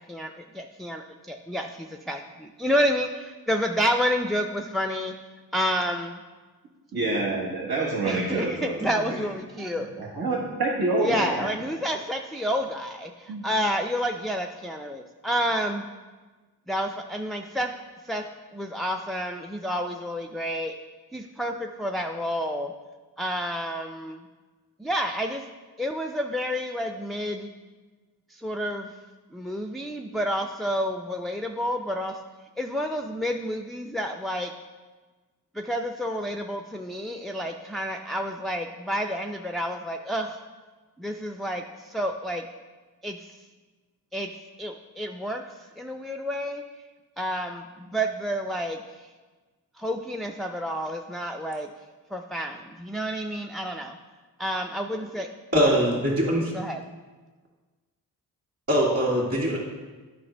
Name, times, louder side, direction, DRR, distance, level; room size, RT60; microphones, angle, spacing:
voice 1, 0.1-5.1 5.5-6.2 8.1-9.9 11.0-13.1 13.4-15.8 16.7-17.7 18.1-18.2 18.5-20.7 21.1-22.7 23.2-24.2 24.8-25.4 25.8-27.5 28.4-28.9 29.3-32.1 32.6-34.5 35.6-40.4 41.0-41.6 41.9-42.4 43.0-43.2 44.1-44.3 44.6-45.4 45.8-46.6 47.2-48.8 49.8-51.7 52.1-54.0 54.4-55.3 56.5-56.8, equal, ahead, 5 dB, 0.4 m, -29 dB
voice 2, 6.9-9.3 9.7-11.5 13.3-13.4, right 2 dB, 75° right, -4 dB, 1.4 m, -27 dB
voice 3, 55.5-56.5 58.7-59.6, equal, 40° right, -8 dB, 2.3 m, -22 dB
9.3 x 5.1 x 3.3 m, 1.3 s
cardioid pair, 55°, 37 cm